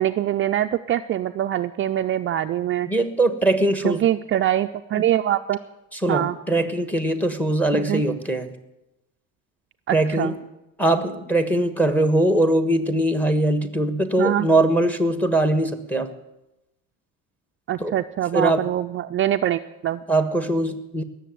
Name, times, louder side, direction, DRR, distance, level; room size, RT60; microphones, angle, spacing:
voice 1, 0.0-2.9 3.8-5.6 6.1-6.4 7.7-8.0 9.9-10.4 14.2-14.5 17.7-20.0, right 12 dB, 35° right, 7 dB, 0.5 m, -23 dB
voice 2, 2.9-4.0 6.0-8.5 9.9-10.3 10.8-16.1 17.8-17.9 18.3-18.7 20.1-21.0, right 1 dB, 5° left, 9 dB, 1.4 m, -21 dB
18.0 x 7.2 x 9.3 m, 0.94 s
cardioid pair, 125°, 34 cm